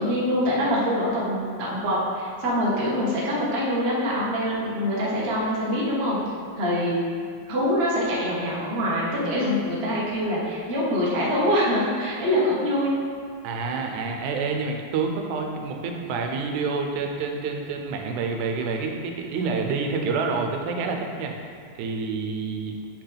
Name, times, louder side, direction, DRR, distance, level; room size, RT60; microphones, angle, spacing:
voice 1, 0.0-6.2 6.6-6.9 7.5-12.9, equal, 40° right, -7 dB, 0.9 m, -24 dB
voice 2, 13.4-22.8, right 4 dB, 85° right, 3 dB, 2.1 m, -28 dB
7.9 x 5.9 x 3.4 m, 2.1 s
omnidirectional pair, 3.4 m